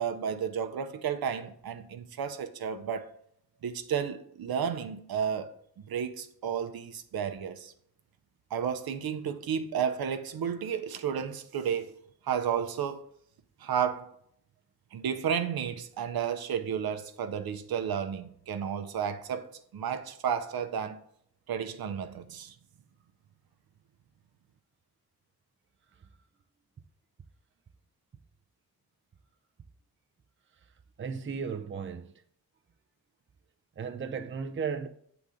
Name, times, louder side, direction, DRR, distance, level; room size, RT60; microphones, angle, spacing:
voice 1, 0.0-3.1 3.6-5.5 5.9-7.7 8.5-12.0 12.2-13.0 13.6-14.1 14.9-21.0 21.5-22.5, right 8 dB, 70° right, 0.7 m, -32 dB
voice 2, 31.0-32.1 33.8-34.9, right 6 dB, 30° right, 0.6 m, -35 dB
7.1 x 4.0 x 4.9 m
cardioid pair, 65°, 38 cm